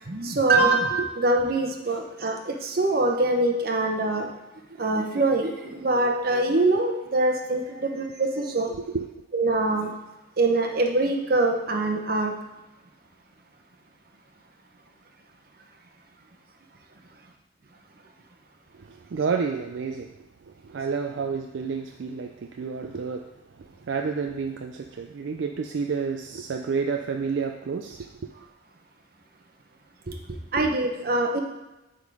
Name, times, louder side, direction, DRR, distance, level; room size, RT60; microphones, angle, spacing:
voice 1, 0.1-4.3 4.8-8.7 9.3-9.9 10.4-12.3 30.1-31.4, right 2 dB, 50° right, 3 dB, 0.9 m, -24 dB
voice 2, 7.7-8.2 8.9-9.1 18.7-20.2 20.5-28.1, right 5 dB, 70° right, 4 dB, 0.4 m, -30 dB
8.4 x 3.7 x 4.8 m, 1.0 s
head